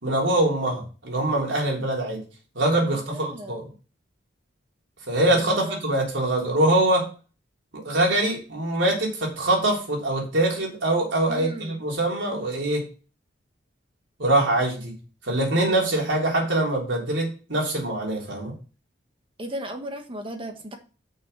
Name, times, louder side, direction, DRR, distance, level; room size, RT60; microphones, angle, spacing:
voice 1, 0.0-2.2 2.6-3.7 5.1-7.1 7.7-12.9 14.2-14.9 15.2-18.5, right 1 dB, 85° right, -1 dB, 3.5 m, -23 dB
voice 2, 2.9-3.5 5.3-5.8 11.3-11.8 19.4-20.8, equal, 30° right, 5 dB, 1.4 m, -36 dB
6.4 x 5.9 x 6.6 m, 0.35 s
head